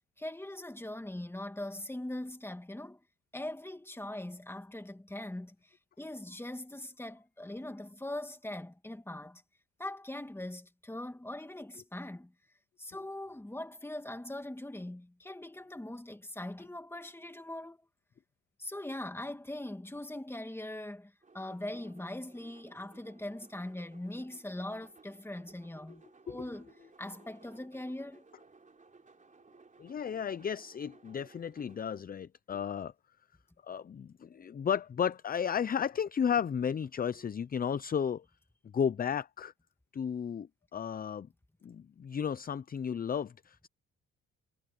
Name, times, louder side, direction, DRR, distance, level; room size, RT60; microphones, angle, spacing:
voice 1, 0.2-3.0 3.3-9.4 9.8-12.3 12.8-17.8 18.6-26.7 27.0-28.2, left 1 dB, 10° left, 2.1 m, -41 dB
sound 1, 21.2-32.0, right 4 dB, 25° right, 3.7 m, -60 dB
voice 2, 29.8-32.9 33.6-38.2 38.7-39.5 39.9-41.3 41.6-43.7, left 7 dB, 30° left, 0.5 m, -33 dB
cardioid pair, 90°, 30 cm